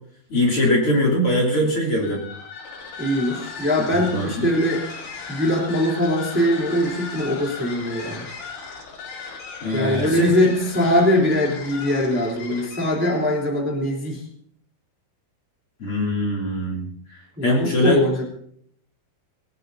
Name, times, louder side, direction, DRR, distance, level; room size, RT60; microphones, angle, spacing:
voice 1, 0.3-2.2 3.9-4.5 9.6-10.6 15.8-18.2, equal, 40° left, -1 dB, 3.5 m, -22 dB
sound 1, 2.0-13.4, left 5 dB, 70° left, 4.3 m, -37 dB
voice 2, 3.0-4.8 5.3-8.2 9.7-14.2 17.4-18.2, left 1 dB, 5° right, -2 dB, 3.0 m, -22 dB
20.5 x 18.5 x 2.8 m, 0.63 s
omnidirectional pair, 4.3 m